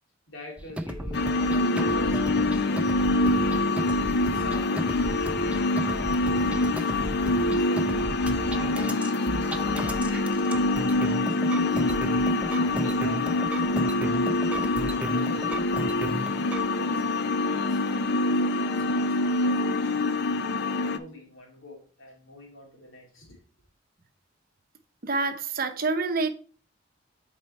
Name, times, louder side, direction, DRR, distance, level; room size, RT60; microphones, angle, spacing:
voice 1, 0.3-3.0 4.1-6.9 7.5-7.9 8.4-10.7 11.0-11.8 12.4-14.1 15.1-15.6 16.1-17.8 18.4-20.0 20.8-23.4, left 2 dB, 80° left, 2.6 m, -45 dB
sound 1, 0.6-16.7, right 1 dB, 5° right, 0.5 m, -34 dB
sound 2, 1.1-21.0, left 2 dB, 55° left, 0.5 m, -25 dB
voice 2, 25.0-26.3, right 3 dB, 45° right, 0.8 m, -27 dB
7.7 x 4.4 x 4.1 m
head